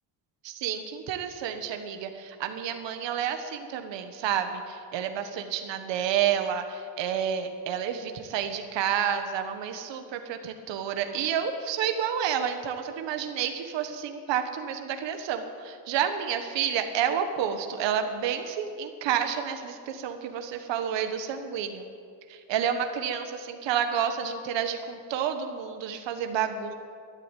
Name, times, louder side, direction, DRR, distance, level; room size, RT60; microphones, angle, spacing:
voice 1, 0.4-21.9 22.3-26.7, right 8 dB, 80° right, 7 dB, 1.4 m, -30 dB
12.5 x 11.5 x 9.1 m, 2.2 s
cardioid pair, 160°, 43 cm